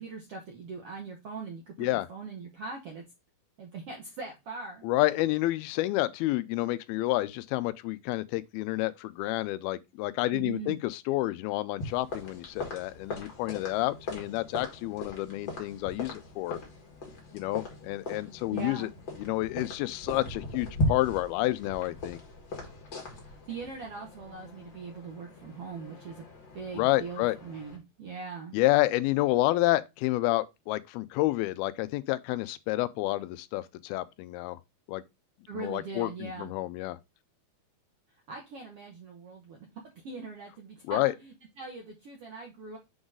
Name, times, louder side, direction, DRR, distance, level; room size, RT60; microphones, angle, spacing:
voice 1, 0.0-3.0 3.6-4.9 10.3-10.8 18.5-18.9 23.2-26.2 26.5-28.6 35.5-36.5 38.3-39.7 40.0-42.8, right 4 dB, 70° right, 1.4 m, -41 dB
voice 2, 4.8-16.6 17.3-18.9 19.2-22.2 26.7-27.4 28.5-34.6 34.9-35.0 35.5-37.0 40.9-41.1, left 17 dB, 90° left, 2.5 m, -29 dB
sound 1, 11.8-27.8, left 1 dB, 40° left, 1.9 m, -39 dB
7.0 x 3.9 x 3.7 m
omnidirectional pair, 4.3 m